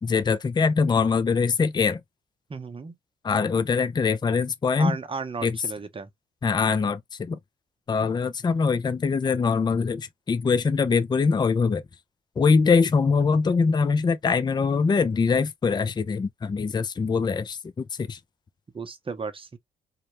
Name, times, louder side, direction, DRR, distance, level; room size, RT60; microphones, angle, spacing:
voice 1, 0.0-2.0 3.2-5.0 5.4-5.6 6.4-7.4 7.9-11.8 12.4-18.2, left 5 dB, 25° left, 0.4 m, -23 dB
voice 2, 2.5-2.9 4.8-6.1 18.7-19.6, right 4 dB, 30° right, 0.7 m, -34 dB
2.2 x 2.0 x 2.9 m
supercardioid pair, 50°, 18 cm